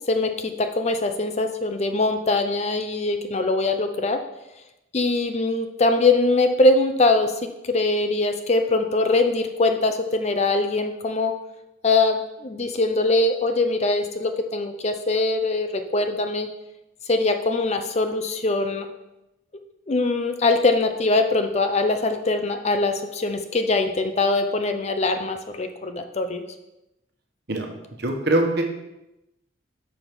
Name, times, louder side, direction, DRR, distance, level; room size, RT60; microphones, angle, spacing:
voice 1, 0.1-4.2 4.9-7.3 7.7-11.3 11.8-16.5 17.1-18.9 19.9-26.4, left 2 dB, 35° left, 7 dB, 0.6 m, -22 dB
voice 2, 28.0-28.6, right 2 dB, 55° right, 2 dB, 1.3 m, -22 dB
6.1 x 5.3 x 6.1 m, 0.93 s
head